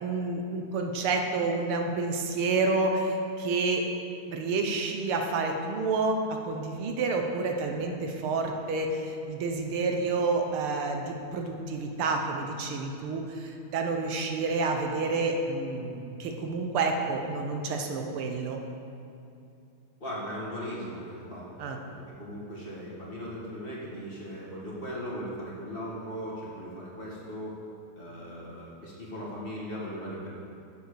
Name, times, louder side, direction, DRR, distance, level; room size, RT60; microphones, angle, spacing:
voice 1, 0.0-3.9 4.3-18.6 21.6-21.8, right 3 dB, 80° right, 3 dB, 1.8 m, -29 dB
voice 2, 20.0-21.5 21.9-27.6 28.0-30.3, equal, 25° left, -6 dB, 1.8 m, -38 dB
8.4 x 6.9 x 6.7 m, 2.7 s
omnidirectional pair, 2.4 m